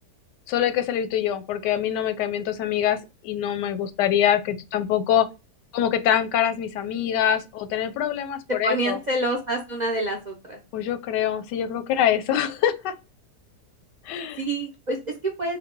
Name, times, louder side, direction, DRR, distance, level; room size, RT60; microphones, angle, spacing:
voice 1, 0.5-5.3 5.7-9.0 10.7-12.9 14.1-14.4, left 10 dB, 90° left, 1.2 m, -24 dB
voice 2, 8.6-10.6 14.4-15.6, right 2 dB, 55° right, 0.4 m, -27 dB
3.8 x 2.2 x 3.6 m
omnidirectional pair, 1.8 m